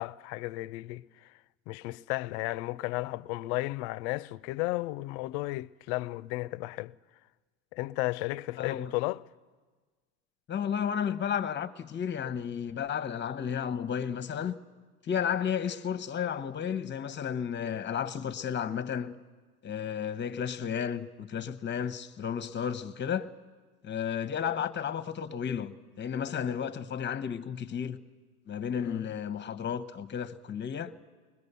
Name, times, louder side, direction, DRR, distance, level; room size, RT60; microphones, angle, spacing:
voice 1, 0.0-1.3 1.7-6.9 7.7-9.2 28.8-29.0, left 20 dB, 60° left, 0.6 m, -34 dB
voice 2, 8.6-8.9 10.5-14.6 15.0-19.1 19.6-23.3 23.8-28.0 28.5-30.9, left 8 dB, 30° left, 1.0 m, -33 dB
22.0 x 21.0 x 6.8 m
hypercardioid pair, 85°, 37 cm